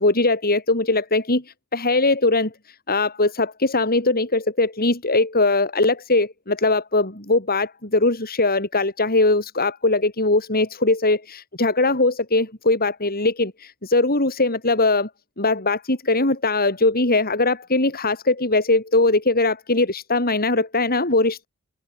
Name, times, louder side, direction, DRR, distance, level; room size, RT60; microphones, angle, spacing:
voice 1, 0.0-1.4 1.7-2.5 2.9-15.1 15.4-21.5, left 2 dB, 45° left, 6.5 m, -20 dB
head